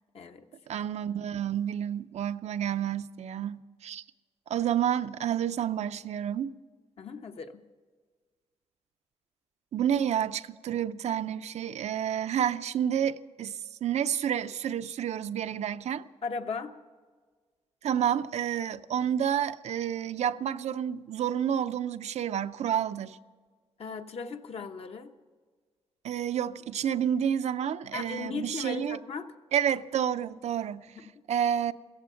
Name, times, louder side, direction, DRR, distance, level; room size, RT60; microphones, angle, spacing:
voice 1, 0.1-0.5 7.0-7.6 16.2-16.7 23.8-25.1 27.9-29.3 31.0-31.1, left 5 dB, 65° left, 1.1 m, -37 dB
voice 2, 0.7-4.0 4.5-6.5 9.7-16.0 17.8-23.2 26.0-29.0 29.5-30.9 31.3-31.7, right 9 dB, 80° right, 0.5 m, -29 dB
16.0 x 15.5 x 5.7 m
wide cardioid pair, 110°, 11 cm